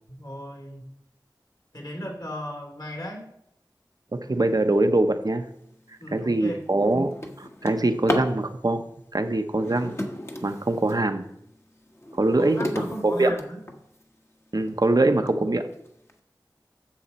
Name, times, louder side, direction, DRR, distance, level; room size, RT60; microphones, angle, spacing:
voice 1, 0.2-0.8 1.7-3.2 6.0-6.6 12.3-13.6, equal, 55° left, 2 dB, 2.7 m, -36 dB
voice 2, 4.1-5.4 6.1-8.8 9.1-10.0 10.4-11.2 12.2-12.7 13.0-13.4 14.5-15.7, right 2 dB, 50° right, 8 dB, 0.8 m, -23 dB
Drawer open or close, 5.7-5.9 6.4-8.4 9.5-11.1 11.6-14.0 14.7-14.8 15.3-15.4 15.7-16.1, equal, 30° left, 1.2 m, -33 dB
10.0 x 7.2 x 4.2 m, 0.76 s
wide cardioid pair, 45°, 8 cm